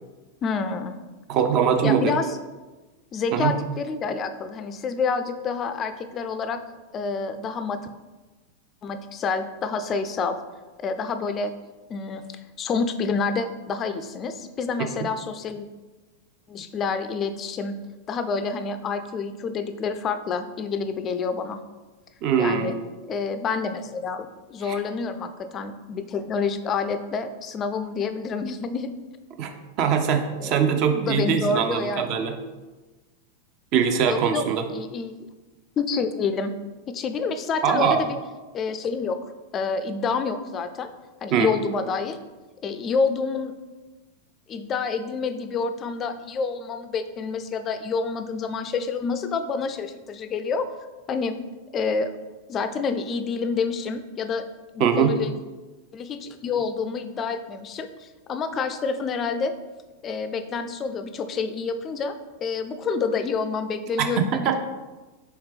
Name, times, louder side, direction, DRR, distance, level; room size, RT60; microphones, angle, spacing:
voice 1, 0.4-1.0 1.8-2.4 3.1-6.6 6.9-7.8 8.8-10.4 10.8-11.5 11.9-12.2 12.6-15.7 16.5-17.8 18.1-21.6 22.4-22.7 23.1-28.9 30.4-32.1 34.1-34.4 34.7-35.1 35.8-36.6 36.9-38.2 38.5-39.2 39.5-40.9 41.2-42.2 42.6-43.5 44.5-50.7 51.1-51.4 51.7-52.1 52.5-54.4 54.7-55.3 55.9-59.5 60.0-64.6, left 5 dB, 30° left, 9 dB, 0.3 m, -28 dB
voice 2, 1.3-2.1 3.3-3.5 22.2-22.7 24.7-24.8 29.4-29.5 29.8-32.3 33.7-34.7 37.6-38.0 41.3-41.5 54.8-55.1 64.0-64.1 64.4-64.6, right 7 dB, 40° right, 6 dB, 0.5 m, -22 dB
4.3 x 3.5 x 3.3 m, 1.2 s
figure-of-eight pair, 90°, 0 cm